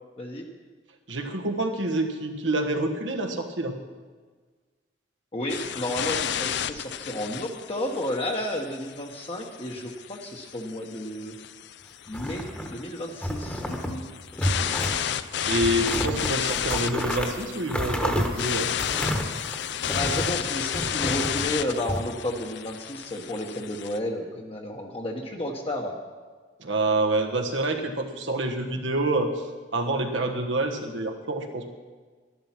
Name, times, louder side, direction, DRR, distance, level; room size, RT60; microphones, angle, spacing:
voice 1, 1.1-3.8 15.5-18.7 26.6-29.5 29.7-31.7, right 2 dB, 85° right, 3 dB, 1.4 m, -27 dB
voice 2, 5.3-11.3 12.1-12.4 12.7-14.0 19.9-26.0, left 1 dB, 30° left, 0 dB, 1.1 m, -32 dB
sound 1, 5.5-24.0, left 9 dB, 65° left, 0.5 m, -32 dB
sound 2, 12.1-12.8 13.2-14.0 14.3-15.0 15.4-20.3 20.7-22.0, equal, 5° left, 1.2 m, -30 dB
12.0 x 11.5 x 6.0 m, 1.5 s
head